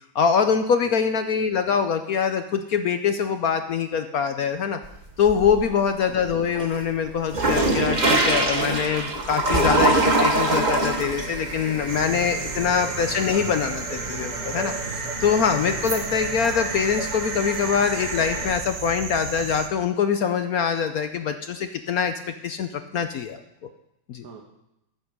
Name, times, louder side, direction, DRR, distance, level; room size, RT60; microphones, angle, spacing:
voice 1, 0.1-4.8 5.2-14.7 15.2-22.1 22.4-23.4 24.1-24.2, left 7 dB, 65° left, 8 dB, 0.9 m, -24 dB
sound 1, 4.8-5.8 6.2-18.5, right 2 dB, 25° right, 1.2 m, -25 dB
voice 2, 5.5-5.9 12.5-12.8 14.8-15.4 15.8-16.0 24.2-24.4, right 6 dB, 50° right, 1 dB, 1.7 m, -44 dB
sound 2, 11.9-19.7, right 5 dB, 80° right, 1.9 m, -34 dB
14.5 x 8.0 x 5.3 m, 0.87 s
omnidirectional pair, 2.2 m